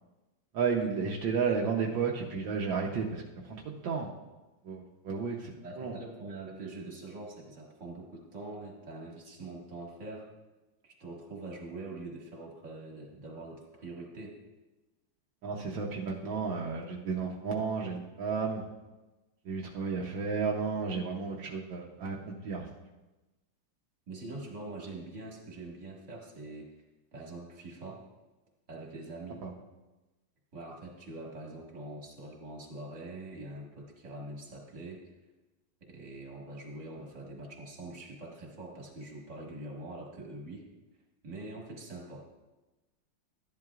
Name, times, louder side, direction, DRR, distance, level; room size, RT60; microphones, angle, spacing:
voice 1, 0.5-3.2 3.5-4.1 4.6-6.0 15.4-18.6 19.4-22.7 29.4-29.5, right 5 dB, 75° right, -1 dB, 1.6 m, -32 dB
voice 2, 5.6-10.3 10.8-14.4 15.6-15.8 24.1-26.7 27.1-28.0 28.7-29.4 30.5-35.0 35.8-40.7 41.2-42.4, right 2 dB, 40° right, -1 dB, 2.1 m, -44 dB
13.0 x 10.5 x 2.4 m, 1.1 s
omnidirectional pair, 2.1 m